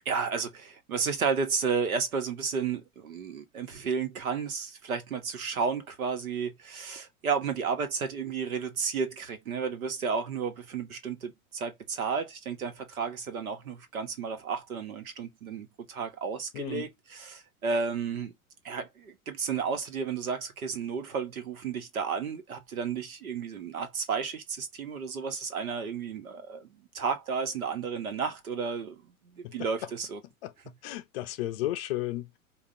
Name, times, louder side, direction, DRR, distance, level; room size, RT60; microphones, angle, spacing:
voice 1, 0.0-18.3 18.6-30.2, right 5 dB, 70° right, 1.2 m, -32 dB
voice 2, 16.5-16.9 29.4-29.9 30.4-30.5 30.8-32.4, left 15 dB, 45° left, 0.6 m, -34 dB
5.0 x 2.5 x 2.8 m
figure-of-eight pair, 95°, 43 cm